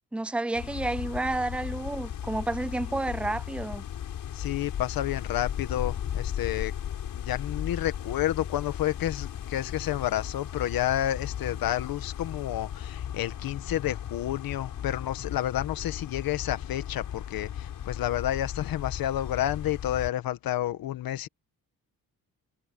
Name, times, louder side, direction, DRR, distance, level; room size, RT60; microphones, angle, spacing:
voice 1, 0.1-3.8, right 2 dB, 5° right, 0.4 m, -30 dB
sound 1, 0.5-20.1, left 10 dB, 70° left, 6.6 m, -36 dB
voice 2, 4.3-6.7 7.1-21.3, left 12 dB, 85° left, 1.5 m, -30 dB
cardioid pair, 130°, 34 cm